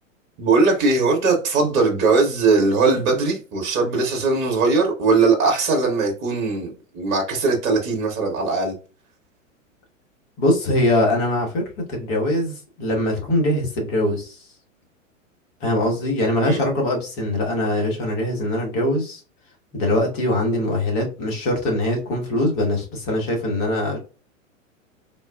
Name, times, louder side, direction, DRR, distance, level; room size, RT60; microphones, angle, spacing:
voice 1, 0.4-8.7 16.4-16.6, right 4 dB, 35° right, 1.0 m, -20 dB
voice 2, 10.4-11.6 11.9-14.4 15.6-19.2 19.7-24.0, left 1 dB, 40° left, 1.3 m, -22 dB
3.7 x 2.3 x 2.3 m
figure-of-eight pair, 100°, 40 cm